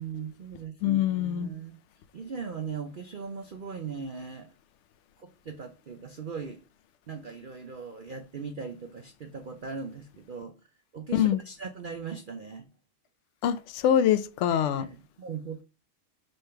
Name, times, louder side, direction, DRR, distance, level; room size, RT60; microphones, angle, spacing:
voice 1, 0.0-1.8 2.1-4.5 5.2-6.6 7.1-10.5 10.9-12.7 14.5-15.6, right 5 dB, 80° right, 0.4 m, -39 dB
voice 2, 0.8-1.5 11.1-11.4 13.4-14.9, left 10 dB, 65° left, 0.7 m, -24 dB
5.3 x 3.6 x 5.6 m
omnidirectional pair, 1.7 m